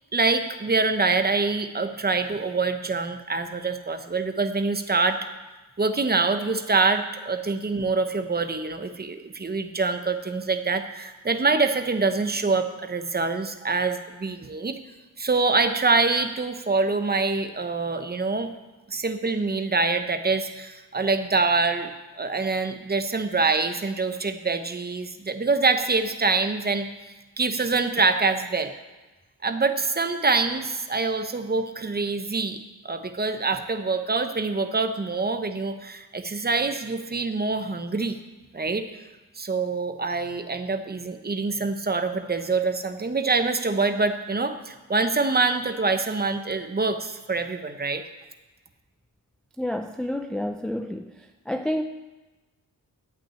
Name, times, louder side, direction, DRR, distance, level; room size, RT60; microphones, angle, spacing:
voice 1, 0.1-5.2 5.8-14.8 15.2-18.5 18.9-21.9 22.2-26.9 27.4-28.7 29.4-32.6 32.8-38.2 38.5-38.9 39.4-48.0, right 3 dB, 25° right, 8 dB, 0.7 m, -25 dB
voice 2, 49.6-51.8, left 1 dB, ahead, 6 dB, 0.3 m, -29 dB
11.5 x 6.0 x 8.7 m, 1.1 s
wide cardioid pair, 175°, 38 cm